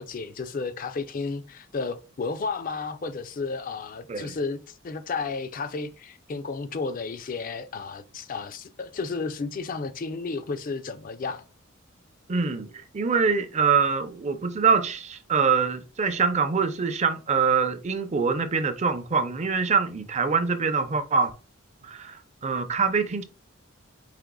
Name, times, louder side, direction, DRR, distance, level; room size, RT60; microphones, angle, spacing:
voice 1, 0.0-11.4, left 4 dB, 45° left, 0.4 m, -32 dB
voice 2, 12.3-21.3 21.8-23.2, right 5 dB, 35° right, 0.5 m, -24 dB
5.0 x 3.2 x 2.3 m
head